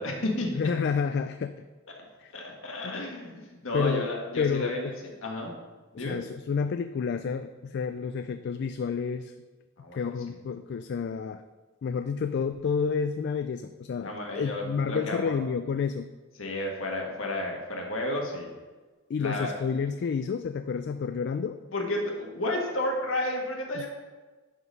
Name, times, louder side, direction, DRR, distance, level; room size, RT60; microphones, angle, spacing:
voice 1, 0.0-0.7 2.3-4.9 5.2-5.5 5.9-6.2 9.8-10.0 14.0-15.4 16.4-18.5 19.2-19.5 21.7-23.9, left 1 dB, 70° left, 0 dB, 1.7 m, -32 dB
voice 2, 0.5-1.6 2.2-2.3 2.8-2.9 3.7-4.0 4.4-4.9 5.9-9.3 9.9-11.4 11.8-16.1 19.1-21.6 23.8-23.9, left 6 dB, 55° left, 9 dB, 0.3 m, -30 dB
11.0 x 4.0 x 5.3 m, 1.3 s
head